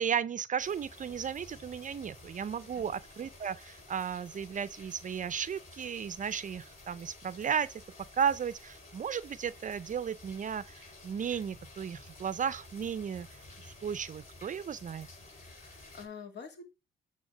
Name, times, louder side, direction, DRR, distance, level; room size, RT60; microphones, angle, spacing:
voice 1, 0.0-7.8 8.2-15.1, right 7 dB, 40° right, 0.5 m, -34 dB
sound 1, 0.6-16.1, left 2 dB, 35° left, 4.9 m, -52 dB
voice 2, 15.3-16.6, left 6 dB, 60° left, 2.3 m, -47 dB
8.8 x 3.5 x 6.1 m
cardioid pair, 90°, 20 cm